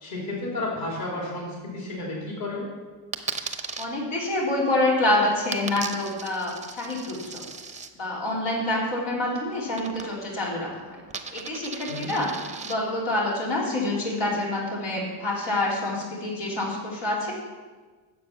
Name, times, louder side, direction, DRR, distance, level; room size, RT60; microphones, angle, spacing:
voice 1, 0.0-2.6 11.9-12.1, left 2 dB, 45° left, -3 dB, 3.0 m, -32 dB
Coin (dropping), 3.1-3.9 5.5-7.9 9.8-10.4 10.7-12.7, right 4 dB, 15° right, 0.7 m, -36 dB
voice 2, 3.8-7.4 7.9-10.7 11.3-12.3 12.6-17.3, left 1 dB, 70° left, -5 dB, 3.4 m, -27 dB
9.4 x 7.3 x 5.7 m, 1.4 s
cardioid pair, 100°, 50 cm